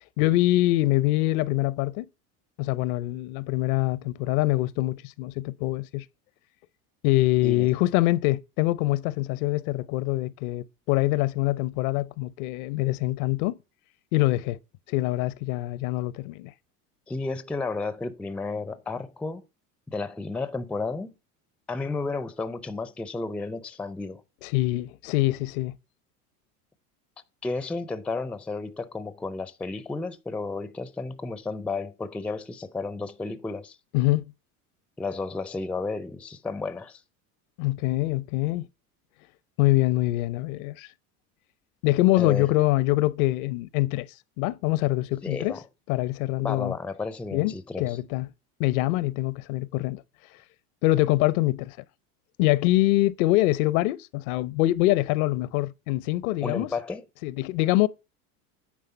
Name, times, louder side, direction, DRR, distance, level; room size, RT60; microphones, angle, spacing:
voice 1, 0.2-2.1 2.6-6.0 7.0-13.6 14.1-14.6 14.9-16.5 24.4-25.7 33.9-34.3 37.6-38.7 39.6-40.9 41.8-44.1 44.4-45.6 45.9-46.7 47.3-48.3 48.6-50.0 50.8-51.8 52.4-56.7 57.2-57.9, left 18 dB, 70° left, 0.6 m, -24 dB
voice 2, 17.1-19.5 19.9-21.1 21.7-24.2 27.4-33.8 35.0-37.0 42.2-42.5 45.2-45.6 46.4-48.0 56.4-57.0, left 3 dB, 5° left, 0.4 m, -32 dB
9.6 x 3.5 x 6.7 m
hypercardioid pair, 95°, 45 cm